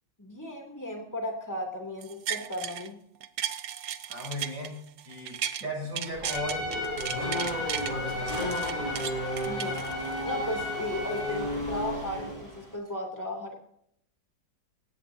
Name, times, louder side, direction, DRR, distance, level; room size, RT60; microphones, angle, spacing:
voice 1, 0.2-3.0 9.5-9.8 10.2-13.6, left 1 dB, 10° left, 1 dB, 2.9 m, -35 dB
sound 1, 2.0-2.9 3.2-5.6 5.9-7.9 8.3-10.3 10.7-10.8, right 10 dB, 65° right, 1.3 m, -35 dB
voice 2, 4.1-6.6 7.1-7.6 7.9-8.6, equal, 80° right, -2 dB, 8.2 m, -37 dB
Race car auto racing / Accelerating revving vroom, 6.0-12.7, equal, 20° right, 7.6 m, -34 dB
Trumpet, 6.2-11.5, left 3 dB, 40° left, 6.4 m, -36 dB
18.0 x 16.5 x 2.8 m, 0.70 s
omnidirectional pair, 2.0 m